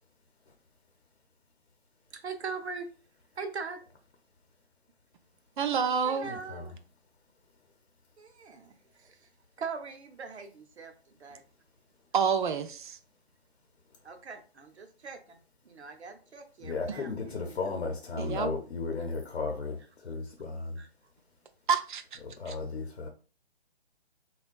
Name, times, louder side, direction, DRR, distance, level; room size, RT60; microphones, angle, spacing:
voice 1, 2.1-2.9 3.4-3.8 6.0-6.7 8.2-9.3 9.6-11.4 14.0-15.4 15.6-17.7 19.0-19.1 20.8-20.9, right 5 dB, 90° right, 0.7 m, -41 dB
voice 2, 5.6-6.3 12.1-13.0 18.2-18.5 21.7-22.0 22.5-22.6, right 6 dB, 50° right, 0.4 m, -28 dB
voice 3, 6.2-6.7 16.6-20.8 22.4-23.1, left 4 dB, 75° left, 0.7 m, -35 dB
3.6 x 2.2 x 2.2 m
hypercardioid pair, 150°, 32 cm